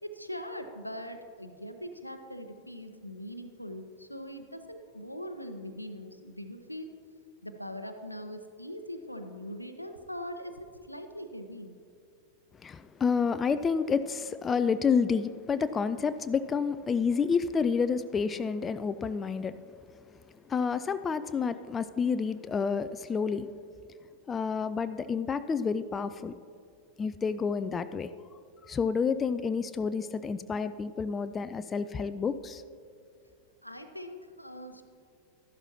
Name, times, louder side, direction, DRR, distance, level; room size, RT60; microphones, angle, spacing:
voice 1, 0.0-6.9 7.4-11.7 33.6-34.9, equal, 90° left, 0.7 m, -41 dB
voice 2, 12.6-19.6 20.5-23.5 24.3-26.3 27.0-28.1 28.6-32.6, left 5 dB, 20° left, 0.3 m, -29 dB
12.5 x 11.5 x 2.8 m
figure-of-eight pair, 90°, 0 cm